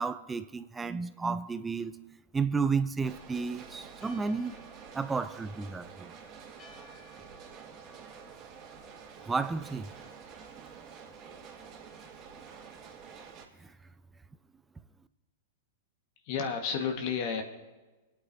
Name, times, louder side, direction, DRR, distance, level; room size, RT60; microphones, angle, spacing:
voice 1, 0.0-1.9 2.3-4.5 4.9-6.1 9.3-9.9, right 5 dB, 15° right, 0.6 m, -32 dB
sound 1, 3.0-13.4, right 6 dB, 35° right, 2.6 m, -49 dB
Church bell, 4.0-10.3, left 2 dB, 35° left, 2.9 m, -60 dB
voice 2, 16.2-17.4, left 6 dB, 50° left, 1.6 m, -31 dB
25.5 x 8.8 x 2.8 m
hypercardioid pair, 110°, 0 cm